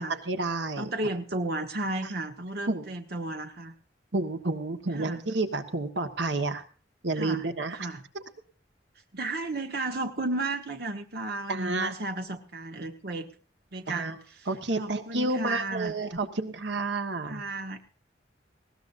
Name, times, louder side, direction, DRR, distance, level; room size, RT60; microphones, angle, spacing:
voice 1, 0.0-0.9 2.0-2.1 2.7-2.9 4.1-6.6 7.0-7.9 11.5-11.9 13.9-14.2 14.5-17.4, right 2 dB, 80° right, 7 dB, 1.5 m, -30 dB
voice 2, 0.8-3.7 4.9-5.2 7.2-7.5 7.7-8.0 9.1-13.3 13.7-14.5 14.8-15.9 17.3-17.8, right 2 dB, 60° right, 5 dB, 1.4 m, -33 dB
20.0 x 17.5 x 2.6 m, 0.39 s
head